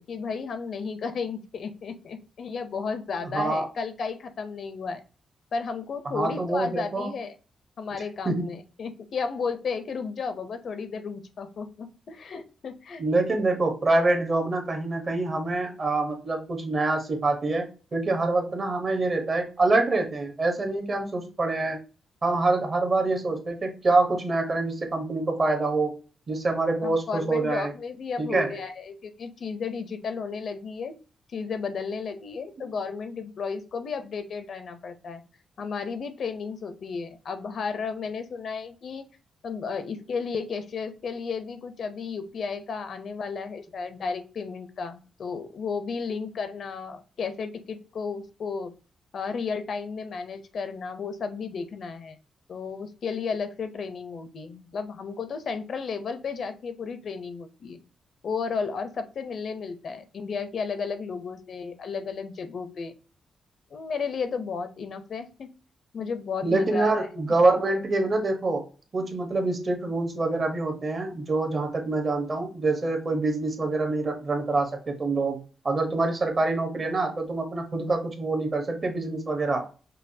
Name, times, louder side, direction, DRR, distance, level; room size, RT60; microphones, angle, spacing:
voice 1, 0.0-5.0 5.5-7.3 7.8-13.0 26.8-31.0 31.3-35.2 35.6-39.1 39.4-48.7 49.1-52.2 52.5-57.8 58.2-62.9 63.7-65.5 65.9-67.1, left 5 dB, 55° left, 9 dB, 0.5 m, -33 dB
voice 2, 3.3-3.7 6.0-7.1 8.2-8.4 13.0-21.8 22.2-26.0 26.3-27.7 28.2-28.5 66.4-68.7 68.9-79.7, right 2 dB, 35° right, 4 dB, 0.9 m, -25 dB
5.3 x 2.2 x 2.6 m, 0.35 s
wide cardioid pair, 130°, 0 cm